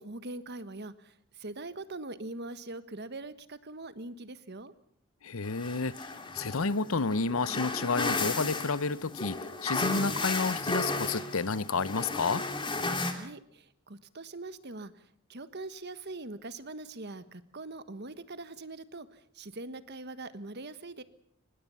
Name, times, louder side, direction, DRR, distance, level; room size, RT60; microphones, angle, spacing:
voice 1, 0.0-4.7 13.0-14.9 15.3-21.0, right 2 dB, 55° right, 13 dB, 1.4 m, -42 dB
voice 2, 5.2-12.4, left 4 dB, 75° left, 18 dB, 0.8 m, -30 dB
sound 1, 5.5-13.1, left 3 dB, 25° left, 2.7 m, -34 dB
25.0 x 20.5 x 7.1 m, 0.64 s
head